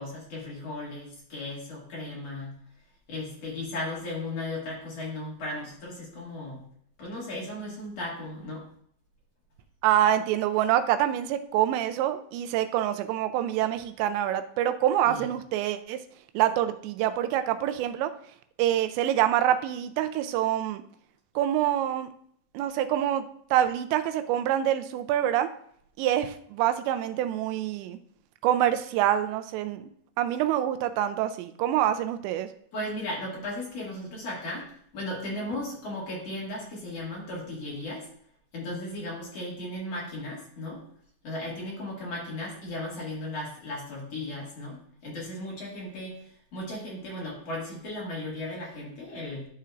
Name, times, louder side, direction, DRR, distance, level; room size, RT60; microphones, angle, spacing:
voice 1, 0.0-2.5 3.1-6.6 7.0-8.6 15.0-15.3 32.7-38.1 38.5-40.8 41.2-49.5, left 1 dB, 45° left, -5 dB, 2.3 m, -36 dB
voice 2, 9.8-16.0 16.3-18.1 18.6-20.8 21.4-22.1 22.5-23.2 23.5-25.5 26.0-28.0 28.4-29.8 30.2-32.5, right 11 dB, 85° right, 9 dB, 2.7 m, -26 dB
12.5 x 4.4 x 2.4 m, 0.65 s
omnidirectional pair, 5.3 m